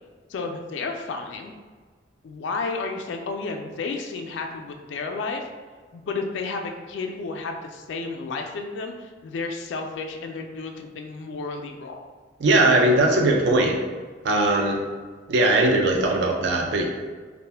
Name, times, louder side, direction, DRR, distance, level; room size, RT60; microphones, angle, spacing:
voice 1, 0.3-1.5 2.2-5.5 5.9-12.1, left 4 dB, 80° left, 3 dB, 0.3 m, -32 dB
voice 2, 12.4-13.8 14.2-14.8 15.3-16.9, right 2 dB, 70° right, 1 dB, 0.4 m, -19 dB
2.4 x 2.1 x 3.3 m, 1.5 s
head